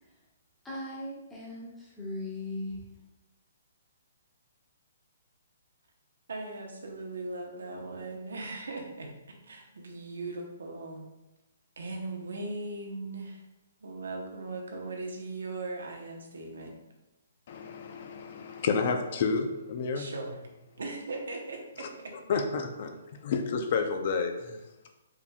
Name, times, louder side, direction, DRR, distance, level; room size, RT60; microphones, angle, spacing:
voice 1, 0.6-2.9, left 1 dB, 5° left, -6 dB, 1.2 m, -38 dB
voice 2, 6.3-9.1 9.4-11.1 11.8-13.4 13.8-16.7 19.9-20.5 20.8-22.1, right 2 dB, 80° right, 1 dB, 0.9 m, -39 dB
voice 3, 17.5-20.1 21.8-21.9 22.3-22.9 23.2-24.6, left 5 dB, 50° left, 5 dB, 0.5 m, -30 dB
4.8 x 3.4 x 2.3 m, 0.99 s
hypercardioid pair, 145°, 0 cm